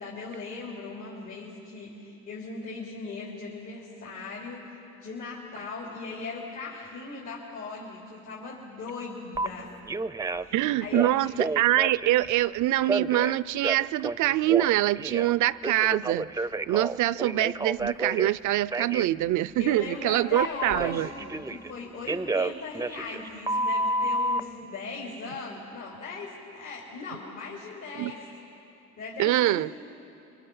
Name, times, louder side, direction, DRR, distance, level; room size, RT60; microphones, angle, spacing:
voice 1, 0.0-9.8 10.4-10.6 10.8-11.3 19.6-28.3 29.0-29.8, left 4 dB, 75° left, -4 dB, 3.6 m, -39 dB
Telephone, 9.3-9.5 9.9-10.5 10.9-12.3 12.8-15.3 15.6-18.3 18.7-19.1 20.4-21.7 22.1-24.4, right 2 dB, 10° right, 0.4 m, -30 dB
voice 2, 10.5-16.3 16.7-21.1 28.0-28.1 29.2-29.7, right 14 dB, 80° right, 19 dB, 0.5 m, -24 dB
27.0 x 25.0 x 5.6 m, 2.9 s
cardioid pair, 90°, 30 cm